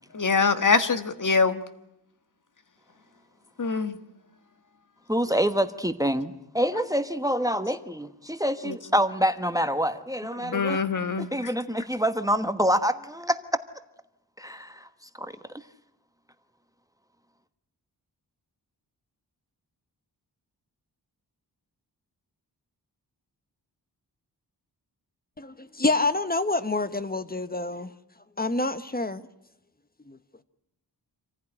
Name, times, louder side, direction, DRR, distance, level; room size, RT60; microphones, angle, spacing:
voice 1, 0.1-1.6 3.6-4.0 8.7-8.8 10.4-11.3, left 4 dB, 50° left, 1.6 m, -23 dB
voice 2, 5.1-10.8 11.2-13.4 14.4-14.9 15.2-15.3, equal, 10° right, 1.2 m, -26 dB
voice 3, 25.4-27.9 28.4-29.2 30.1-30.2, left 2 dB, 20° left, 1.3 m, -27 dB
27.0 x 15.5 x 9.9 m
wide cardioid pair, 85°, 41 cm